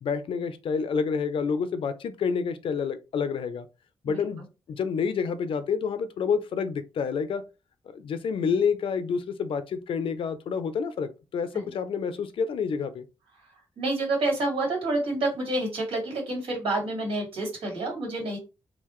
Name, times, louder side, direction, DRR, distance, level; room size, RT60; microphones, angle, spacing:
voice 1, 0.0-3.7 4.0-7.4 7.9-13.1, left 6 dB, 70° left, 0.5 m, -28 dB
voice 2, 13.8-18.4, right 2 dB, 85° right, 2.0 m, -28 dB
3.8 x 2.4 x 3.0 m
cardioid pair, 100°, 9 cm